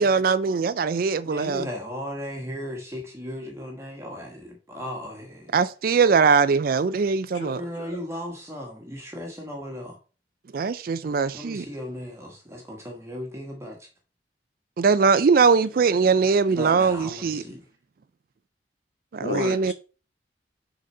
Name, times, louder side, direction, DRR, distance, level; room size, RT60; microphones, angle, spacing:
voice 1, 0.0-1.7 5.5-7.6 10.5-11.6 14.8-17.4 19.1-19.7, right 5 dB, 50° right, 0.4 m, -21 dB
voice 2, 1.2-5.5 7.5-10.0 11.3-13.9 16.5-17.7, left 1 dB, 15° right, 1.2 m, -36 dB
voice 3, 7.3-8.0 15.4-15.9 19.2-19.7, left 2 dB, 85° left, 1.9 m, -34 dB
6.3 x 4.0 x 5.4 m
head